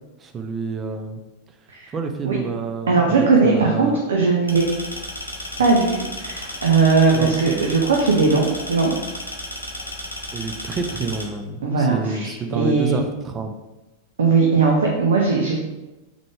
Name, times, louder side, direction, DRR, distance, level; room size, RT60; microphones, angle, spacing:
voice 1, 0.2-1.2 1.9-4.0 7.1-7.6 10.3-13.5, right 5 dB, 25° right, 5 dB, 0.5 m, -28 dB
voice 2, 2.9-4.6 5.6-8.9 11.6-13.0 14.2-15.5, right 4 dB, 65° right, -2 dB, 0.6 m, -19 dB
sound 1, 4.5-11.2, left 1 dB, 80° left, 0.6 m, -33 dB
3.7 x 3.3 x 3.5 m, 1.1 s
figure-of-eight pair, 90°, 0 cm